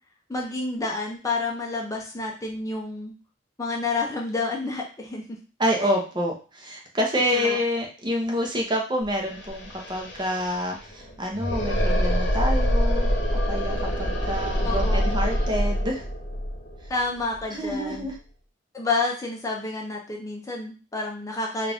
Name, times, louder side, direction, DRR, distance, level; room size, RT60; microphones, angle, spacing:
voice 1, 0.3-3.1 3.6-5.2 5.8-5.9 7.2-7.6 14.6-15.0 16.9-18.1 18.7-21.7, left 3 dB, 20° left, -1 dB, 0.6 m, -29 dB
voice 2, 5.6-16.0 17.5-18.2, equal, 25° right, 1 dB, 0.7 m, -28 dB
sound 1, 9.0-9.1 9.3-18.1, equal, 65° left, 0.9 m, -25 dB
3.6 x 2.5 x 3.4 m, 0.35 s
head